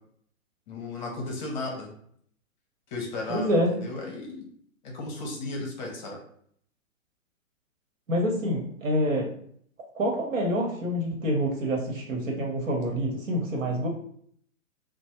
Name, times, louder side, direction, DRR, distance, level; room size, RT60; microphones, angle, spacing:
voice 1, 0.7-1.9 2.9-4.4 4.8-6.2, left 2 dB, 35° left, 0 dB, 0.7 m, -35 dB
voice 2, 3.3-3.7 8.1-9.3 10.0-13.9, equal, 65° right, 0 dB, 1.1 m, -27 dB
3.0 x 2.1 x 2.9 m, 0.64 s
figure-of-eight pair, 125°, 41 cm